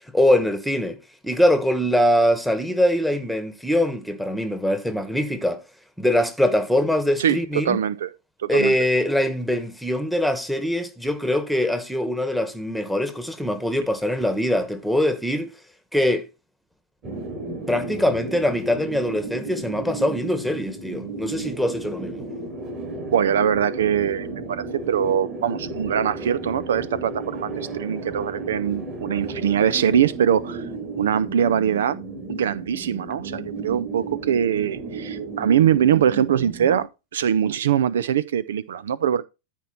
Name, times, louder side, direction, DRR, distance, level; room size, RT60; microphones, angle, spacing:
voice 1, 0.1-1.0 1.2-5.6 6.0-7.8 8.5-15.5 15.9-16.3 17.7-22.3, left 1 dB, ahead, 1.5 m, -22 dB
voice 2, 7.2-8.1 8.4-8.7 23.1-30.7 31.0-32.0 32.3-36.9 37.1-39.2, right 9 dB, 75° right, 0.4 m, -22 dB
sound 1, 17.0-36.9, right 3 dB, 35° right, 6.7 m, -33 dB
13.5 x 4.4 x 4.4 m
hypercardioid pair, 100°, 0 cm